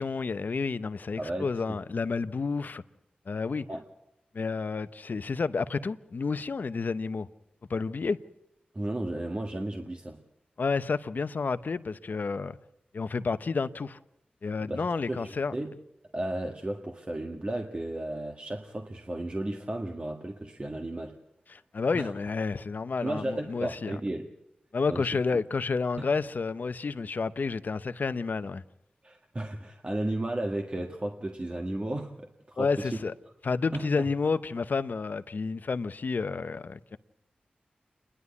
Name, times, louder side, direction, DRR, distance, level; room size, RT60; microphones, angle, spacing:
voice 1, 0.0-2.8 3.3-3.7 4.3-7.3 7.7-8.2 10.6-12.6 12.9-14.0 14.4-15.5 21.5-24.0 24.7-28.6 32.6-33.1 33.4-37.0, left 4 dB, 65° left, 0.7 m, -30 dB
voice 2, 1.2-1.8 3.7-3.9 8.7-10.2 14.6-15.8 16.1-21.2 21.9-22.1 23.0-24.3 24.9-25.2 29.0-33.0 33.7-34.1, right 1 dB, 35° right, 1.6 m, -34 dB
28.5 x 11.5 x 8.3 m
cardioid pair, 50°, 3 cm